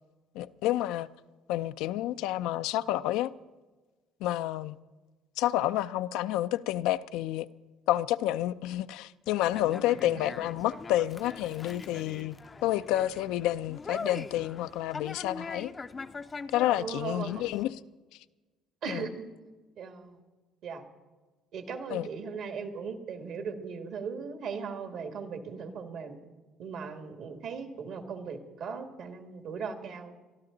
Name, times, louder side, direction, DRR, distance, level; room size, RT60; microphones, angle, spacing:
voice 1, 0.3-1.1 1.5-3.3 4.2-4.8 5.4-7.5 7.9-12.4 12.6-15.7 16.5-17.8 18.9-19.2 21.9-22.1, left 14 dB, 85° left, 0.4 m, -29 dB
Conversation, 9.3-17.6, left 4 dB, 30° left, 0.5 m, -42 dB
voice 2, 9.9-10.2 16.8-17.4 18.8-19.1 19.8-20.2 20.6-20.8 21.5-26.2 26.6-30.1, right 5 dB, 70° right, 1.9 m, -38 dB
22.5 x 12.5 x 3.9 m
cardioid pair, 95°, 0 cm